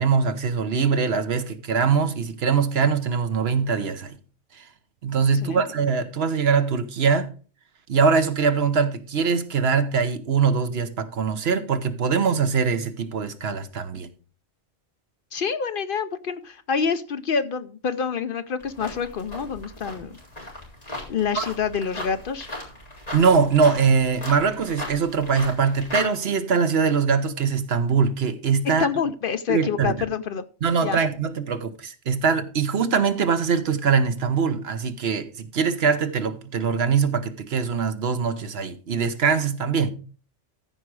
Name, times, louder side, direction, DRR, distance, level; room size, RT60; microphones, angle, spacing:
voice 1, 0.0-4.1 4.5-4.6 5.0-7.3 7.9-14.1 21.3-21.4 23.1-28.9 29.5-29.9 30.6-39.9, right 5 dB, 65° right, 1.1 m, -22 dB
voice 2, 15.3-20.1 21.1-22.5 28.6-30.4 30.8-31.0, left 6 dB, 55° left, 0.7 m, -27 dB
sound 1, 18.6-26.0, left 1 dB, 35° left, 3.7 m, -37 dB
14.5 x 4.9 x 4.7 m
omnidirectional pair, 1.2 m